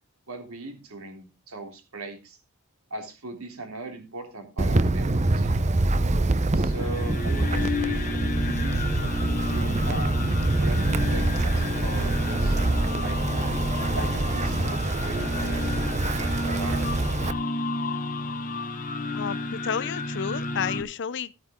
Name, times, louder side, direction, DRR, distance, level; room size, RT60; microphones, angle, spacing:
voice 1, 0.3-2.4 2.9-5.7 6.5-13.2 13.8-16.8, right 2 dB, 70° right, 3.4 m, -39 dB
Wind, 4.6-17.3, right 2 dB, 30° right, 0.7 m, -25 dB
sound 1, 6.6-20.8, left 2 dB, 35° left, 1.4 m, -31 dB
voice 2, 19.1-21.3, left 7 dB, 55° left, 0.6 m, -31 dB
14.5 x 8.8 x 3.7 m
head